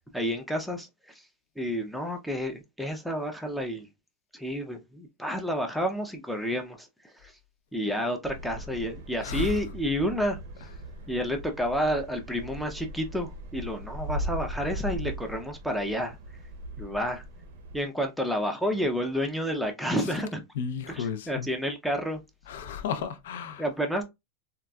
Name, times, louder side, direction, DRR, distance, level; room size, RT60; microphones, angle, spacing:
voice 1, 0.1-0.9 1.6-3.9 4.3-7.3 7.7-10.4 11.1-16.2 16.8-17.2 17.7-20.4 20.9-22.2 23.6-24.0, equal, ahead, 0.4 m, -30 dB
sound 1, 8.2-17.8, equal, 70° right, 0.6 m, -39 dB
voice 2, 20.6-21.5 22.5-23.6, left 7 dB, 75° left, 0.5 m, -33 dB
3.8 x 2.3 x 2.3 m
supercardioid pair, 165°, 0 cm